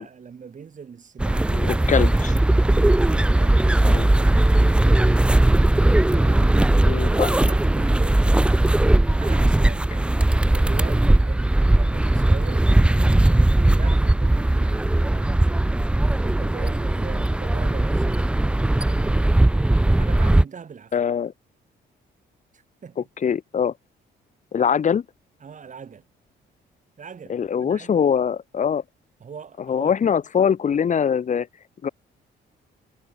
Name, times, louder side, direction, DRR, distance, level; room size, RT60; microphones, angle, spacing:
voice 1, 0.0-2.0 2.8-5.4 6.1-6.7 7.1-8.4 9.1-15.4 16.1-18.3 18.8-19.3 20.0-20.9 22.5-23.1 25.4-26.0 27.0-27.9 29.2-30.0, right 6 dB, 40° right, 1.6 m, -41 dB
sound 1, 1.2-20.4, right 1 dB, 5° right, 0.3 m, -18 dB
voice 2, 1.5-2.1 3.9-4.1 6.9-7.3 20.9-21.3 23.2-23.7 24.5-25.0 27.3-28.8 29.7-31.5 31.8-31.9, left 7 dB, 40° left, 0.8 m, -22 dB
cardioid pair, 90°, 20 cm